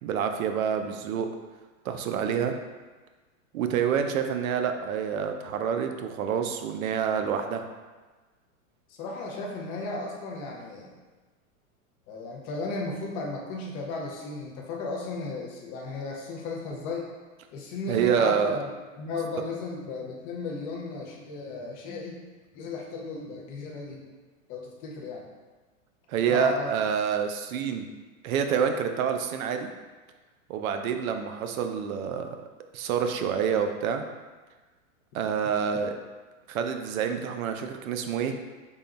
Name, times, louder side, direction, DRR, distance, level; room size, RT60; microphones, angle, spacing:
voice 1, 0.0-1.3 1.9-2.5 3.5-7.6 17.9-18.6 26.1-27.9 28.2-29.7 30.5-32.3 32.7-34.0 35.1-35.9 36.5-38.3, right 7 dB, 80° right, 6 dB, 0.5 m, -27 dB
voice 2, 8.9-10.9 12.1-17.1 17.5-18.7 19.0-22.2 22.5-24.0 24.5-25.3 26.3-26.7, left 3 dB, 20° left, -2 dB, 0.4 m, -35 dB
3.7 x 2.2 x 3.9 m, 1.3 s
supercardioid pair, 140°, 41 cm